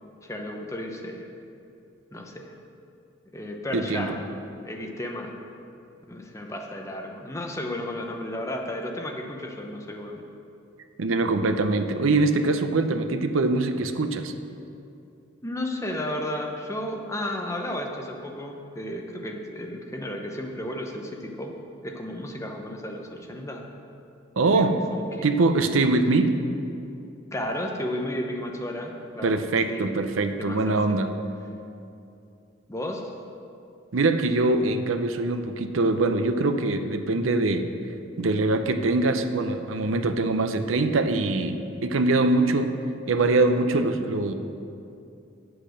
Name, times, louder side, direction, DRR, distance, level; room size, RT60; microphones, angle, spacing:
voice 1, 0.2-1.3 2.1-2.5 3.3-4.3 4.6-5.4 6.1-10.2 15.4-21.6 21.8-23.7 24.4-25.3 27.3-29.9 30.4-31.0 32.7-33.1, left 1 dB, 15° left, 2 dB, 0.8 m, -33 dB
voice 2, 3.7-4.1 11.0-14.3 24.4-24.8 25.2-26.4 29.2-31.1 33.9-37.7 38.2-42.8 43.1-44.3, right 2 dB, 85° right, 8 dB, 0.7 m, -23 dB
8.7 x 7.9 x 6.3 m, 2.6 s
head